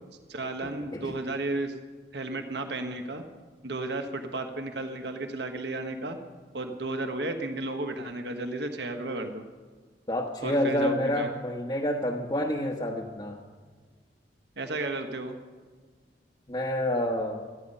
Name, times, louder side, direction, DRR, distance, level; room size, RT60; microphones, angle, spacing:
voice 1, 0.3-1.7 2.1-3.2 3.6-6.2 6.5-9.4 10.4-11.3 14.6-15.4, right 2 dB, 75° right, 6 dB, 1.4 m, -33 dB
voice 2, 10.1-13.4 16.5-17.4, left 1 dB, 25° left, -2 dB, 1.1 m, -28 dB
17.5 x 13.5 x 5.5 m, 1.5 s
head